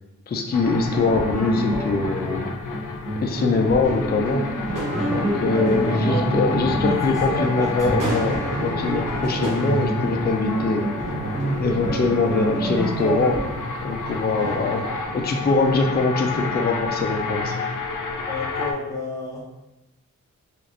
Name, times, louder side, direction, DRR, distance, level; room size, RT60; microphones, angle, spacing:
voice 1, 0.3-2.5 3.2-4.4 5.1-10.9 11.6-13.4 13.8-14.8 15.1-17.5, left 3 dB, 35° left, 2 dB, 0.4 m, -23 dB
sound 1, 0.5-18.7, left 4 dB, 85° left, 0.5 m, -30 dB
sound 2, 0.6-13.4, right 1 dB, 20° right, 1.2 m, -28 dB
sound 3, 3.8-16.0, right 1 dB, 90° right, 0.9 m, -35 dB
voice 2, 5.5-6.3 6.7-7.9 18.3-19.4, left 1 dB, 10° left, -6 dB, 1.0 m, -30 dB
3.2 x 2.5 x 3.8 m, 0.99 s
wide cardioid pair, 135°, 31 cm